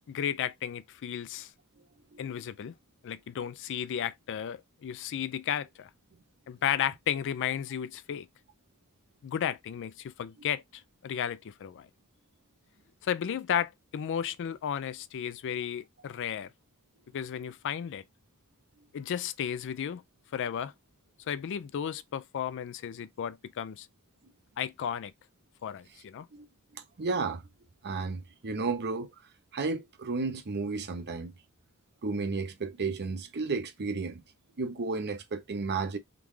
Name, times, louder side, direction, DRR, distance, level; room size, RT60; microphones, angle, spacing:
voice 1, 0.1-1.5 2.2-2.7 3.0-5.9 6.5-8.3 9.2-11.9 13.0-16.5 17.1-18.0 18.9-20.0 20.3-20.7 21.3-23.9 24.6-25.1 25.6-26.3, left 9 dB, 55° left, 0.4 m, -34 dB
voice 2, 26.7-27.4 27.8-29.1 29.5-31.3 32.0-34.2 34.6-36.0, right 4 dB, 50° right, 0.7 m, -33 dB
3.6 x 2.4 x 3.1 m
head